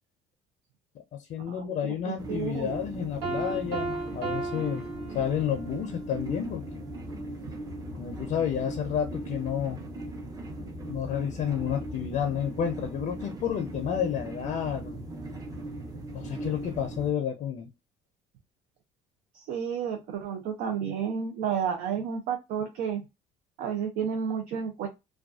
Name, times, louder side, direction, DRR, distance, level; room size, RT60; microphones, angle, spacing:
voice 1, 1.1-4.8 5.1-6.8 8.0-9.8 10.9-15.0 16.1-17.7, left 9 dB, 60° left, 0.5 m, -30 dB
voice 2, 2.1-2.8 19.3-23.0 23.6-24.9, right 7 dB, 75° right, 0.5 m, -31 dB
sound 1, 2.2-17.1, right 1 dB, 25° right, 0.7 m, -39 dB
Piano, 3.2-5.8, right 3 dB, 90° right, 1.0 m, -34 dB
2.4 x 2.2 x 2.3 m
supercardioid pair, 75°, 15 cm